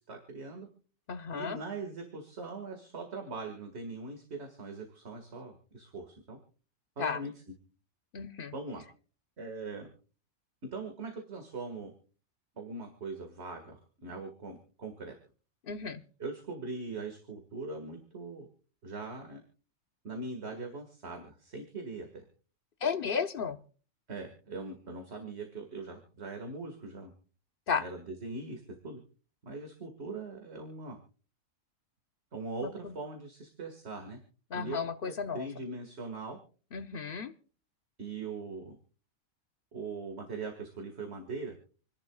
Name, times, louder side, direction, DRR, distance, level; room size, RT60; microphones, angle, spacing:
voice 1, 0.1-0.7 1.3-6.4 7.0-7.3 8.5-8.8 9.4-9.9 10.7-11.9 12.6-15.1 16.2-18.5 18.8-19.4 20.0-22.2 24.1-27.1 27.8-29.0 29.4-31.0 32.3-34.2 34.5-36.4 38.0-38.7 39.7-41.5, right 3 dB, 50° right, 3 dB, 2.2 m, -41 dB
voice 2, 1.1-1.6 7.0-7.2 8.1-8.5 15.7-16.0 22.8-23.6 27.7-27.8 32.6-32.9 34.5-35.5 36.7-37.3, left 6 dB, 45° left, 9 dB, 1.0 m, -33 dB
28.5 x 10.5 x 2.4 m, 0.39 s
omnidirectional pair, 1.5 m